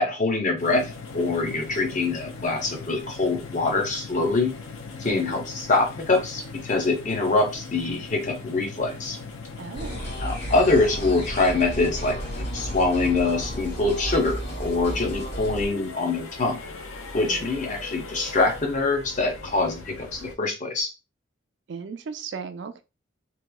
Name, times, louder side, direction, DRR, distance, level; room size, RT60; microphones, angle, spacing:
voice 1, 0.0-4.5 5.0-9.2 10.2-16.6 17.1-20.9, left 3 dB, 40° left, 0.6 m, -24 dB
sound 1, 0.6-20.3, left 4 dB, 85° left, 0.5 m, -40 dB
voice 2, 5.0-5.4 9.6-10.0 17.1-17.5 21.7-22.8, right 5 dB, 60° right, 0.3 m, -37 dB
sound 2, 9.7-15.7, equal, 60° left, 1.5 m, -33 dB
2.8 x 2.3 x 2.2 m
head